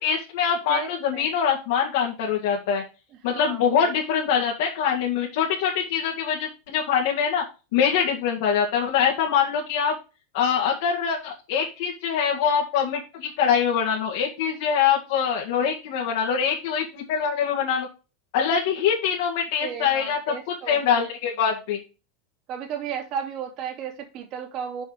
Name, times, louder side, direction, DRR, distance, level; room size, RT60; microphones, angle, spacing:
voice 1, 0.0-2.8 3.2-7.4 7.7-9.9 10.3-17.9 18.3-21.8, left 7 dB, 70° left, 0 dB, 1.9 m, -24 dB
voice 2, 0.7-1.3 3.3-3.9 19.6-21.0 22.5-24.8, right 8 dB, 40° right, -1 dB, 2.7 m, -34 dB
6.3 x 5.5 x 4.9 m, 0.31 s
supercardioid pair, 145°, 0 cm